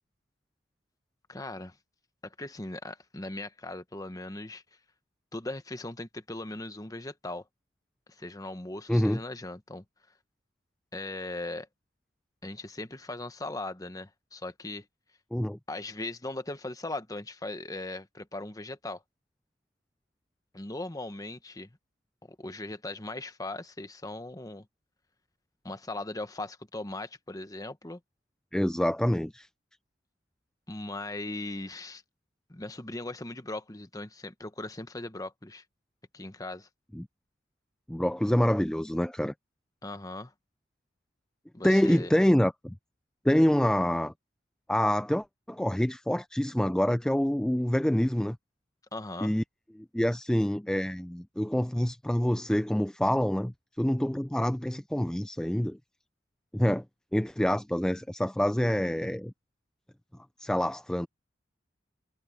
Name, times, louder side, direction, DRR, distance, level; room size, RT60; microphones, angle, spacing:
voice 1, 1.3-1.8 2.2-4.6 5.3-7.5 8.1-9.8 10.9-11.7 12.4-14.8 15.7-19.0 20.5-21.8 22.3-24.7 25.6-28.0 30.7-32.0 32.5-35.6 36.1-36.7 39.8-40.3 41.5-42.1 48.9-49.4, left 2 dB, 20° left, 1.1 m, -39 dB
voice 2, 8.9-9.2 15.3-15.6 28.5-29.5 36.9-37.1 37.9-39.3 41.6-42.8 43.2-44.1 44.7-48.4 49.2-49.4 49.8-55.8 56.5-56.8 57.1-59.3 60.4-61.1, equal, 5° left, 0.3 m, -26 dB
head